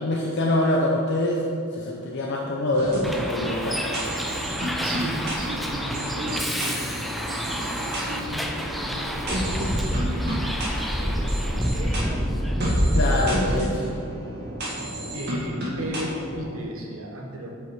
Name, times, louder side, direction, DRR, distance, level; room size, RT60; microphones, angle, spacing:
voice 1, 0.0-1.4 1.7-3.8 12.9-13.9, left 1 dB, 60° left, -2 dB, 0.7 m, -24 dB
sound 1, 2.7-16.6, equal, 55° right, 2.0 m, -30 dB
Bus, 3.0-13.6, equal, ahead, 0.5 m, -29 dB
voice 2, 4.8-7.1 7.3-12.2 12.6-12.8 15.1-17.5, equal, 85° right, 0 dB, 1.3 m, -36 dB
8.0 x 5.4 x 4.7 m, 2.5 s
head